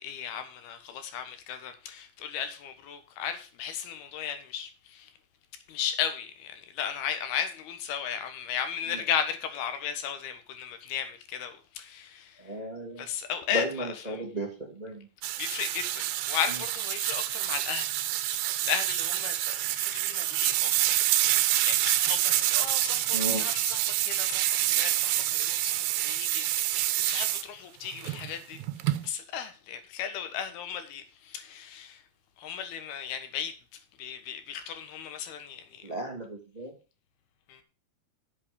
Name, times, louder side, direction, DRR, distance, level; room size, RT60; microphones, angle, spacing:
voice 1, 0.0-5.1 5.7-12.6 13.0-14.2 15.4-21.0 21.6-28.6 29.0-32.0 32.4-35.9 37.5-37.6, left 8 dB, 70° left, 3.2 m, -35 dB
voice 2, 12.4-13.1 13.5-15.1 23.1-23.4 35.8-36.7, equal, 15° right, 1.7 m, -34 dB
washing dishes JA, 15.2-27.4 27.9-29.1, right 14 dB, 85° right, 3.0 m, -27 dB
8.7 x 7.8 x 6.9 m
omnidirectional pair, 4.8 m